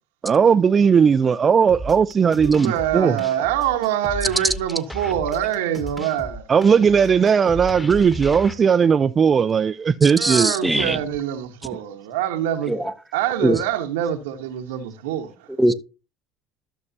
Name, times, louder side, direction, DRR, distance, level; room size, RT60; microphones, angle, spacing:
voice 1, 0.2-3.1 6.5-10.5, right 6 dB, 35° right, 0.4 m, -17 dB
sound 1, 1.7-8.5, equal, 15° left, 1.6 m, -35 dB
voice 2, 2.4-6.5 7.8-8.2 10.1-12.8 13.1-15.5, right 10 dB, 85° right, 1.2 m, -25 dB
voice 3, 10.0-11.0 12.7-12.9 13.4-13.6 15.6-15.7, right 1 dB, 5° right, 0.8 m, -21 dB
12.5 x 6.5 x 2.8 m
hypercardioid pair, 80°, 0 cm